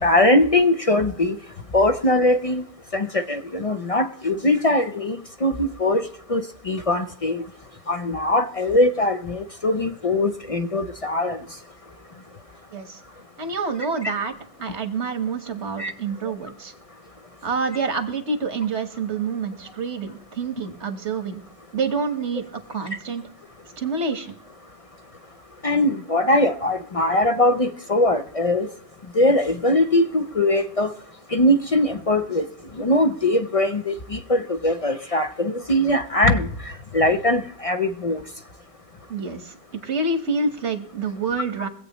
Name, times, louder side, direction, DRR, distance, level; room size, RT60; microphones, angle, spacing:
voice 1, 0.0-1.4 1.7-2.6 2.9-7.4 7.9-11.5 15.8-15.9 25.6-28.7 29.1-30.9 31.3-32.5 32.7-38.2, left 1 dB, 40° left, 7 dB, 0.6 m, -21 dB
voice 2, 13.4-14.3 14.6-16.7 17.4-21.4 21.7-23.2 23.8-24.3 39.1-41.7, right 4 dB, 80° right, 8 dB, 1.6 m, -27 dB
23.0 x 8.2 x 3.0 m, 0.73 s
omnidirectional pair, 1.1 m